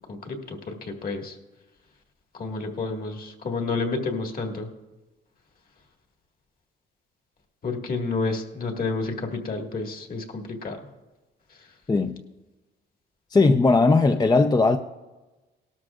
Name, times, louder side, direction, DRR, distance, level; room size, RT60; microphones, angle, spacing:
voice 1, 0.1-1.4 2.4-4.7 7.6-10.8, left 3 dB, 45° left, 1.9 m, -30 dB
voice 2, 11.9-12.2 13.3-14.8, left 3 dB, 20° left, 0.5 m, -18 dB
18.0 x 12.5 x 2.5 m
cardioid pair, 90°, 20 cm